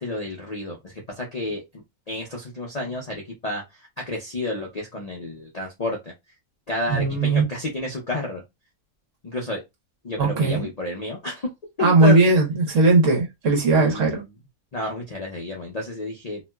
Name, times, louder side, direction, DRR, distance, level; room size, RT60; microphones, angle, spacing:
voice 1, 0.0-3.6 4.1-6.1 6.7-8.4 9.2-9.6 10.0-11.5 11.8-12.4 13.7-14.2 14.7-16.4, left 2 dB, 45° left, 0.5 m, -30 dB
voice 2, 6.9-7.4 10.2-10.7 11.8-14.2, right 3 dB, 60° right, 1.4 m, -18 dB
3.0 x 2.8 x 2.2 m
omnidirectional pair, 1.5 m